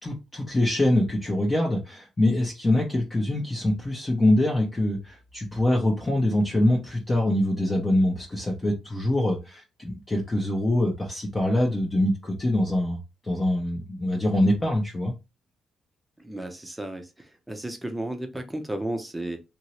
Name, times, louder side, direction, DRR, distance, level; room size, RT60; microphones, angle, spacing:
voice 1, 0.0-13.0 13.2-15.1, left 1 dB, 20° left, 0.8 m, -24 dB
voice 2, 16.2-17.1 17.5-19.4, right 1 dB, 10° right, 0.7 m, -33 dB
3.0 x 2.6 x 3.0 m
cardioid pair, 90°, 0 cm